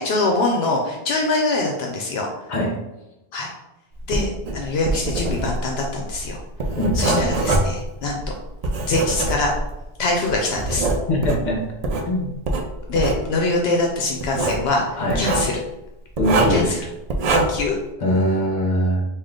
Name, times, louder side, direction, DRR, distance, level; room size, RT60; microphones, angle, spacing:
voice 1, 0.0-2.3 3.3-3.5 4.1-6.4 7.0-8.3 8.9-9.5 10.0-10.9 12.9-14.9 15.1-15.6 16.5-16.8 17.3-17.8, left 2 dB, 80° left, 0 dB, 0.8 m, -23 dB
Writing, 4.0-9.8 10.3-12.1 12.4-13.2 14.2-14.7 15.1-15.5 16.2-16.7 17.1-17.7, right 2 dB, 55° right, 0.5 m, -23 dB
voice 2, 6.8-7.3 11.1-11.6 12.1-12.3 15.0-15.2 16.2-16.9 18.0-19.0, left 1 dB, 50° left, 0 dB, 1.0 m, -21 dB
3.6 x 2.4 x 3.6 m, 0.96 s
omnidirectional pair, 1.1 m